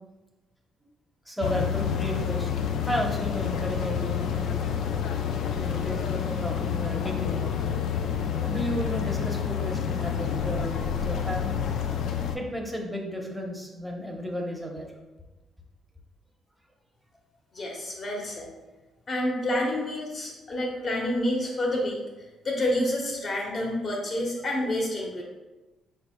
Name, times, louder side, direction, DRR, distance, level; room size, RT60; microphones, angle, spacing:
voice 1, 1.3-4.6 5.6-7.5 8.4-11.6 12.3-14.9, equal, ahead, 0 dB, 0.9 m, -33 dB
sound 1, 1.4-12.4, left 8 dB, 75° left, 0.4 m, -28 dB
voice 2, 17.5-18.5 19.1-22.0 22.4-25.2, left 1 dB, 45° left, -1 dB, 1.3 m, -28 dB
5.0 x 4.4 x 2.2 m, 1.1 s
cardioid pair, 90°, 0 cm